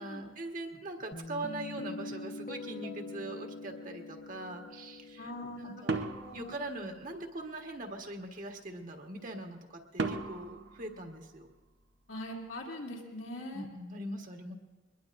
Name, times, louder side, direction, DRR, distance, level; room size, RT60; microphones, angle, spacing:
voice 1, 0.0-5.3 5.6-6.1 6.3-11.5 13.5-14.5, right 2 dB, 45° right, 2 dB, 1.4 m, -42 dB
Guitar, 1.1-6.2, left 3 dB, 45° left, 1.2 m, -44 dB
voice 2, 5.2-6.6 12.1-13.6, left 1 dB, 80° left, -2 dB, 2.8 m, -42 dB
sound 1, 5.9-7.4 10.0-11.8, right 3 dB, 70° right, 0.9 m, -37 dB
22.5 x 21.0 x 2.6 m, 1.2 s
head